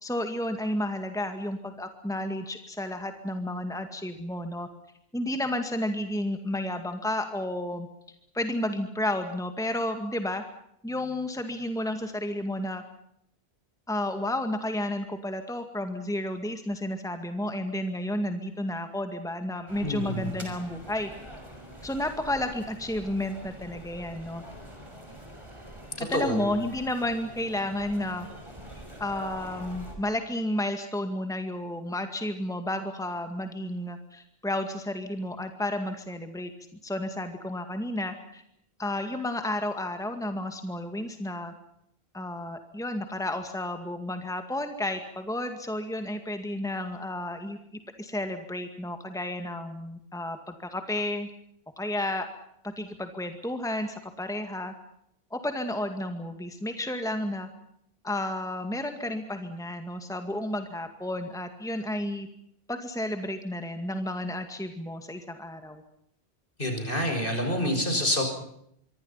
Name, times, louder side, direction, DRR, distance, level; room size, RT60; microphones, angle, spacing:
voice 1, 0.0-4.7 5.1-7.9 8.3-10.4 10.8-12.8 13.9-21.1 21.8-24.4 26.1-28.3 29.0-36.5 36.8-38.4 38.8-41.5 42.1-47.6 48.0-51.3 51.8-52.3 52.6-54.7 55.3-57.5 58.0-62.3 62.7-65.8, left 1 dB, 5° left, 7 dB, 2.1 m, -32 dB
sound 1, 19.7-30.0, right 1 dB, 25° right, 6.2 m, -45 dB
voice 2, 19.8-20.3 26.1-26.5 66.6-68.2, left 1 dB, 55° left, 5 dB, 6.6 m, -27 dB
25.5 x 24.0 x 5.8 m, 0.72 s
omnidirectional pair, 1.1 m